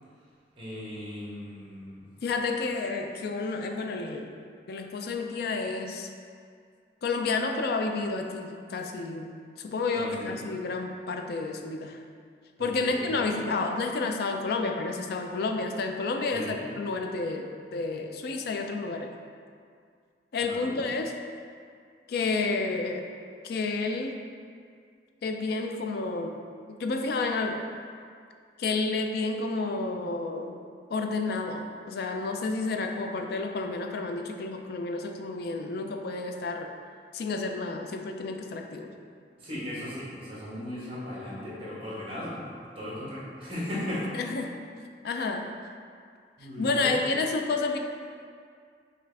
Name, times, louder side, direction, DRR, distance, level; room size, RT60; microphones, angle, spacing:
voice 1, 0.6-2.0 9.9-10.4 12.6-13.2 16.3-16.6 20.4-20.8 39.4-42.4 42.7-44.1 46.4-46.9, left 1 dB, 30° right, -7 dB, 1.2 m, -37 dB
voice 2, 2.2-4.4 4.7-6.1 7.0-9.3 9.6-12.0 12.6-19.1 20.3-21.1 22.1-23.1 23.4-24.2 25.2-26.4 26.8-27.6 28.6-30.6 30.9-36.7 37.1-38.9 44.1-44.5 45.0-45.5 46.6-47.8, left 3 dB, 60° left, 4 dB, 0.4 m, -30 dB
5.7 x 2.5 x 3.3 m, 2.2 s
head